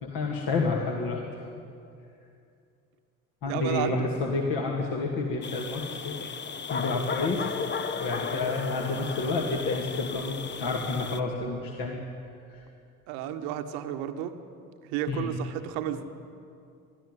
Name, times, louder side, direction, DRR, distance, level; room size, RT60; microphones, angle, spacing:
voice 1, 0.0-1.2 3.4-6.2 6.7-12.0 12.5-12.6 15.1-15.3, left 3 dB, 50° left, 0 dB, 2.5 m, -30 dB
voice 2, 3.5-4.1 13.1-14.4 14.8-16.0, right 11 dB, 55° right, 8 dB, 1.3 m, -32 dB
sound 1, 5.4-11.2, left 5 dB, 25° left, 0.9 m, -35 dB
23.0 x 13.5 x 9.6 m, 2.5 s
figure-of-eight pair, 55°, 44 cm